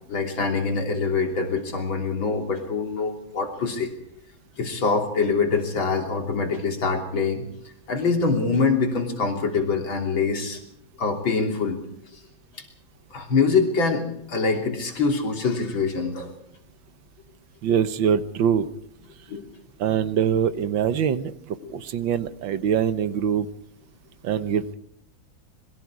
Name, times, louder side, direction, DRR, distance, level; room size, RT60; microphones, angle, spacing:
voice 1, 0.1-3.9 4.6-7.4 7.9-10.6 11.0-11.8 12.5-12.6 13.1-16.3 19.3-19.5 21.6-21.7, left 4 dB, 90° left, 3 dB, 3.9 m, -24 dB
voice 2, 17.6-18.7 19.8-23.5 24.2-24.7, right 8 dB, 80° right, 13 dB, 1.8 m, -23 dB
26.5 x 21.5 x 4.9 m, 0.70 s
omnidirectional pair, 2.1 m